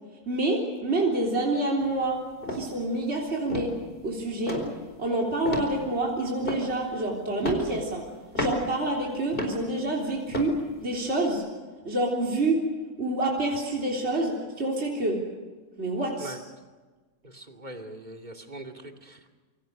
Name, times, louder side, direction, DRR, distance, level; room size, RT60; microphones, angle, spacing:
voice 1, 0.3-2.2 2.5-3.7 4.0-4.6 5.0-8.1 8.4-10.6 10.8-11.4 11.9-12.6 13.0-15.2 15.8-16.4, right 2 dB, 45° right, -2 dB, 3.9 m, -27 dB
sound 1, 1.8-2.1 2.4-2.7 3.2-3.3 3.5-4.1 4.5-4.8 5.5-5.9 6.4-6.9 7.4-7.8 8.3-8.7 9.3-9.6 10.3-10.6 11.1-11.2, left 1 dB, 35° left, 4.7 m, -31 dB
voice 2, 17.2-19.3, right 1 dB, 30° right, 3 dB, 2.7 m, -42 dB
28.5 x 24.5 x 6.6 m, 1.3 s
omnidirectional pair, 1.6 m